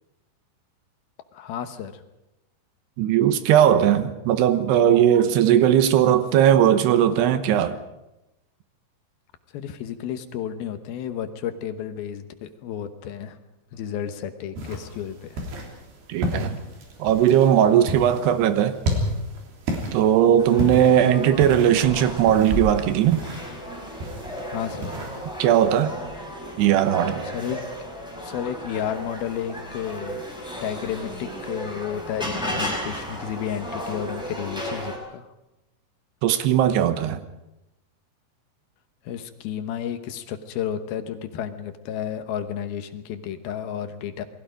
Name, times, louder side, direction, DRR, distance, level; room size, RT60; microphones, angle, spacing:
voice 1, 1.3-2.0 9.5-13.4 13.7-15.4 20.8-20.9 24.5-24.9 27.3-27.6 28.2-30.2 30.6-35.3 39.0-44.2, left 9 dB, 70° left, 2.8 m, -32 dB
voice 2, 3.0-7.8 16.1-16.6 17.0-18.7 19.9-23.2 25.4-25.9 26.6-27.3 36.2-37.2, right 10 dB, 85° right, 3.2 m, -18 dB
sound 1, 14.5-25.5, equal, 70° right, 5.3 m, -33 dB
sound 2, 20.4-35.0, equal, ahead, 5.2 m, -34 dB
28.0 x 20.5 x 5.1 m
omnidirectional pair, 4.8 m